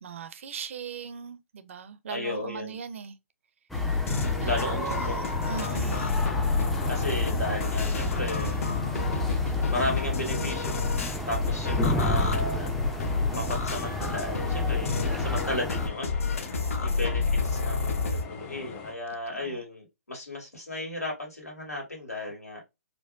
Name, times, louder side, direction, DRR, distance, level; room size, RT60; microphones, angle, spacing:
voice 1, 0.0-3.2 4.4-6.2 16.5-17.0 19.3-19.6, right 7 dB, 55° right, 0.5 m, -40 dB
voice 2, 2.1-2.8 4.4-5.4 6.9-8.6 9.7-10.8 11.3-12.7 13.3-22.6, left 2 dB, 85° left, 1.7 m, -34 dB
sound 1, 3.7-18.2, left 4 dB, 60° left, 0.8 m, -29 dB
sound 2, 3.7-15.9, equal, ahead, 0.4 m, -32 dB
sound 3, 5.7-18.9, left 5 dB, 25° left, 0.8 m, -44 dB
4.5 x 2.1 x 2.5 m
figure-of-eight pair, 130°, 8 cm